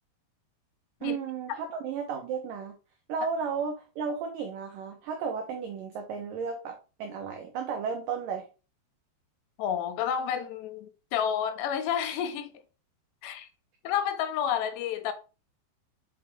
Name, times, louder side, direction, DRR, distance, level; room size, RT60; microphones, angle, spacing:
voice 1, 1.0-2.8 3.1-8.5, right 6 dB, 85° right, 1.9 m, -34 dB
voice 2, 9.6-12.5 13.2-13.5 13.8-15.1, left 9 dB, 80° left, 2.9 m, -30 dB
6.2 x 6.0 x 3.6 m
omnidirectional pair, 5.1 m